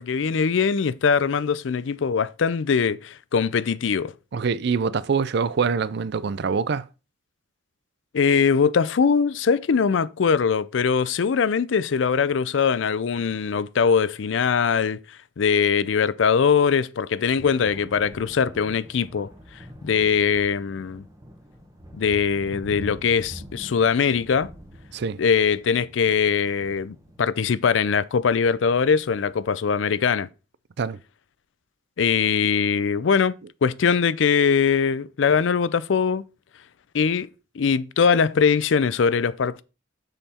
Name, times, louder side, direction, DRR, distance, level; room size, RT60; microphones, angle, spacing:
voice 1, 0.0-4.1 8.1-15.0 15.4-19.3 19.8-21.0 21.9-24.5 25.2-30.3 32.0-33.3 33.6-36.2 36.9-37.3 37.6-39.6, left 6 dB, 75° left, 0.4 m, -21 dB
voice 2, 4.3-6.9 24.9-25.2 30.8-31.0, right 5 dB, 60° right, 0.4 m, -24 dB
sound 1, 17.2-29.4, equal, 20° right, 1.3 m, -45 dB
6.9 x 5.6 x 4.3 m
head